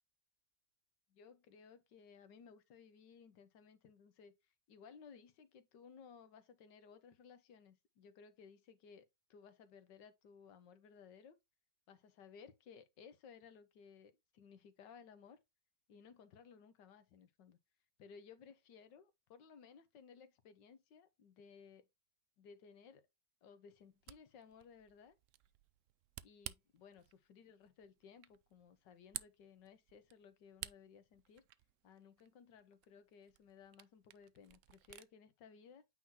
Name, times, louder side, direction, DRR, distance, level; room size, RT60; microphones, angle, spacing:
voice 1, 1.1-4.3 4.7-11.4 11.9-15.4 15.9-17.6 18.0-21.9 22.4-23.1 23.4-25.1 26.2-31.4 31.8-35.8, left 6 dB, 80° left, 1.6 m, -60 dB
Camera, 23.8-35.1, right 13 dB, 90° right, 0.6 m, -55 dB
9.0 x 3.8 x 2.8 m
omnidirectional pair, 1.9 m